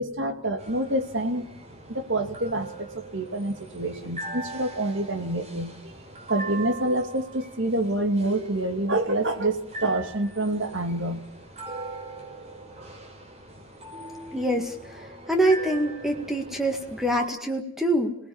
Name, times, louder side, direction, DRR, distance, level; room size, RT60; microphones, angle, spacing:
voice 1, 0.0-1.5 1.9-5.9 6.3-11.2, right 1 dB, 55° right, 6 dB, 2.4 m, -27 dB
sound 1, 0.6-17.3, right 2 dB, 30° right, 5.2 m, -40 dB
voice 2, 14.3-18.2, right 1 dB, ahead, 3 dB, 2.0 m, -25 dB
26.5 x 19.0 x 7.2 m, 0.68 s
head